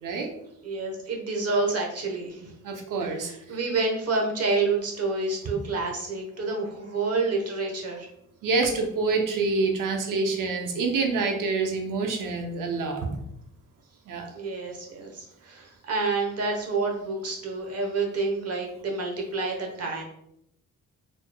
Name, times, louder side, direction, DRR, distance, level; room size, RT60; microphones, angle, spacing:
voice 1, 0.6-2.5 3.0-8.1 14.3-20.0, right 3 dB, 50° right, 0 dB, 1.0 m, -28 dB
voice 2, 2.6-3.3 8.4-13.1 14.1-14.3, right 3 dB, 75° right, 3 dB, 0.8 m, -26 dB
4.1 x 3.1 x 2.2 m, 0.79 s
cardioid pair, 100°, 32 cm